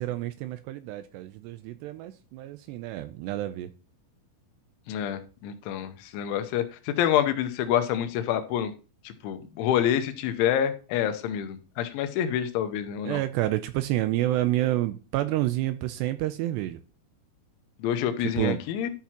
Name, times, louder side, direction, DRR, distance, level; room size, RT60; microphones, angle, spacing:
voice 1, 0.0-3.7 13.0-16.8 18.2-18.6, right 15 dB, 85° right, 2.5 m, -29 dB
voice 2, 4.9-8.7 9.1-13.2 17.8-18.9, left 10 dB, 90° left, 3.3 m, -27 dB
13.0 x 5.9 x 2.9 m
omnidirectional pair, 5.3 m